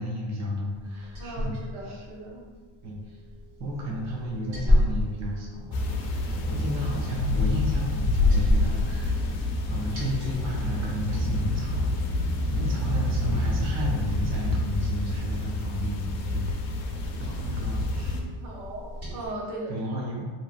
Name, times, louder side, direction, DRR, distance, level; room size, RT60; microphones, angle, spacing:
voice 1, 0.0-1.5 1.9-2.0 2.8-3.2 3.6-16.5 17.2-18.2 19.7-20.4, equal, 35° right, -2 dB, 0.5 m, -33 dB
Liquid, 0.7-19.3, left 1 dB, 55° right, 1.5 m, -33 dB
voice 2, 1.2-2.5 18.1-19.8, right 1 dB, 90° right, -2 dB, 0.9 m, -38 dB
sound 1, 5.7-18.2, left 2 dB, 70° left, 0.6 m, -28 dB
sound 2, 10.7-15.5, right 1 dB, 20° left, 0.5 m, -36 dB
3.0 x 2.7 x 2.4 m, 1.3 s
cardioid pair, 155°, 48 cm